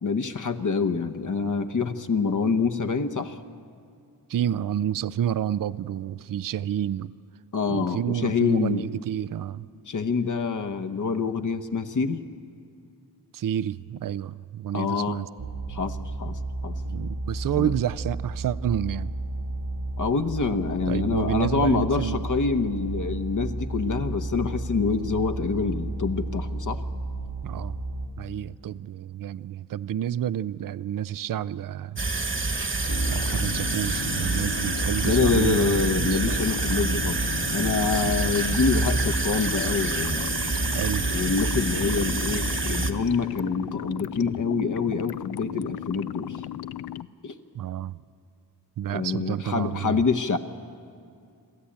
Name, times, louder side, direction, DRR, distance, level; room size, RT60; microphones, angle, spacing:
voice 1, 0.0-3.4 7.5-8.8 9.9-12.2 14.7-15.3 15.7-16.8 17.5-17.7 20.0-26.8 35.0-40.3 41.1-46.4 47.2-47.4 48.9-50.4, left 5 dB, 50° left, 8 dB, 1.0 m, -26 dB
voice 2, 4.3-7.1 7.7-9.7 13.3-15.3 16.8-19.1 20.9-22.3 27.4-27.8 28.2-32.1 33.1-36.4 38.0-38.1 40.7-41.1 47.5-48.0 48.8-50.0, right 10 dB, 55° right, 18 dB, 0.5 m, -29 dB
sound 1, 15.4-28.1, right 2 dB, 85° right, 2.9 m, -32 dB
sound 2, 32.0-42.9, right 3 dB, 30° right, 1.3 m, -27 dB
sound 3, 32.9-47.1, left 11 dB, 70° left, 0.5 m, -36 dB
27.5 x 13.0 x 8.6 m, 2.4 s
wide cardioid pair, 95°, 40 cm